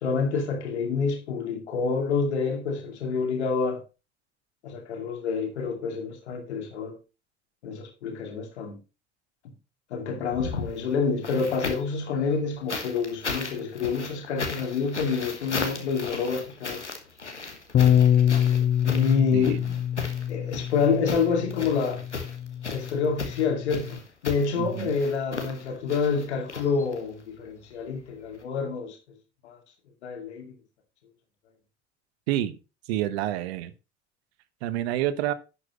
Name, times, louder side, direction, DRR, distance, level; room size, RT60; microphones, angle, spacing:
voice 1, 0.0-3.8 4.6-7.0 7.6-8.8 9.9-16.8 18.8-19.8 20.3-22.0 22.7-29.0 29.4-29.6 30.0-30.5, left 5 dB, 75° left, 2.4 m, -27 dB
sound 1, 10.2-12.0 12.7-27.2 28.3-28.4, left 3 dB, 90° left, 1.4 m, -36 dB
Bass guitar, 17.7-24.0, left 10 dB, 25° left, 0.4 m, -25 dB
voice 2, 19.3-19.6 24.6-25.0 32.3-32.6 32.9-33.7 34.6-35.3, right 13 dB, 65° right, 1.0 m, -28 dB
11.0 x 8.4 x 3.0 m
figure-of-eight pair, 60°, 34 cm